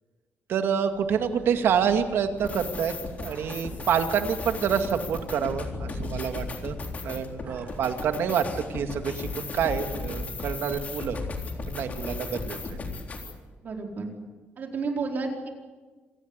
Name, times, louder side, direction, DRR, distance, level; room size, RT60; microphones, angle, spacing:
voice 1, 0.5-2.9 3.2-6.8 7.0-11.2 11.7-12.8, right 7 dB, 70° right, 6 dB, 2.2 m, -27 dB
sound 1, 0.8-8.1, right 2 dB, 30° right, 7.6 m, -46 dB
sound 2, 2.4-13.3, left 3 dB, 35° left, 3.8 m, -36 dB
voice 2, 13.6-14.1 14.6-15.5, right 4 dB, 45° right, 2 dB, 4.4 m, -31 dB
26.0 x 17.5 x 8.2 m, 1.4 s
cardioid pair, 150°, 4 cm